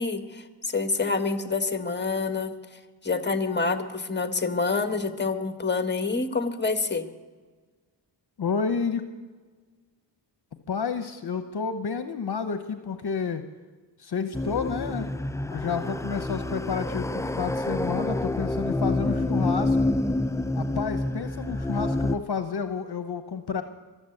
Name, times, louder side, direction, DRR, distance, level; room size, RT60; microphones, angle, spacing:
voice 1, 0.0-2.5 3.0-7.1, left 4 dB, 25° left, 8 dB, 1.5 m, -27 dB
voice 2, 8.4-9.0 10.7-13.4 14.0-15.1 15.5-19.8 20.5-23.6, left 6 dB, 55° left, 9 dB, 1.0 m, -30 dB
sound 1, 14.3-22.2, left 2 dB, 5° left, 0.4 m, -28 dB
23.0 x 7.8 x 7.9 m, 1.4 s
cardioid pair, 60°, 45 cm